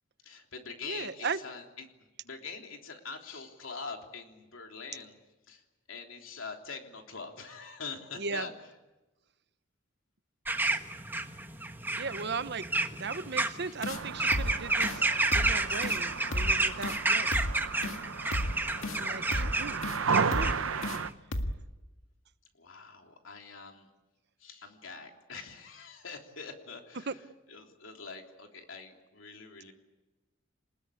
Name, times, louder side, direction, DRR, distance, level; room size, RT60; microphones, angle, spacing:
voice 1, 0.2-1.9 2.2-5.2 5.5-8.5 12.8-13.0 13.6-13.7 18.8-19.5 22.5-23.9 24.4-29.7, left 4 dB, 70° left, 3 dB, 3.3 m, -44 dB
voice 2, 0.8-1.4 8.2-8.5 12.0-12.7 12.9-17.3 17.8-18.4 18.9-19.8 20.1-20.5 27.1-27.2, right 4 dB, 55° right, 12 dB, 1.0 m, -37 dB
sound 1, 10.4-21.1, right 2 dB, 10° right, 1.4 m, -31 dB
sound 2, 13.8-14.0 14.3-14.5 14.8-15.0 15.3-15.5 15.8-16.0 16.3-16.5 16.8-17.0 17.3-17.5 17.8-18.0 18.3-18.5 18.8-19.0 19.3-19.5 19.8-20.0 20.3-20.5 20.8-21.0 21.3-21.5, left 1 dB, 90° left, 1.9 m, -32 dB
sound 3, 13.9-21.1, right 5 dB, 85° right, 0.9 m, -34 dB
28.0 x 20.0 x 8.4 m, 1.1 s
head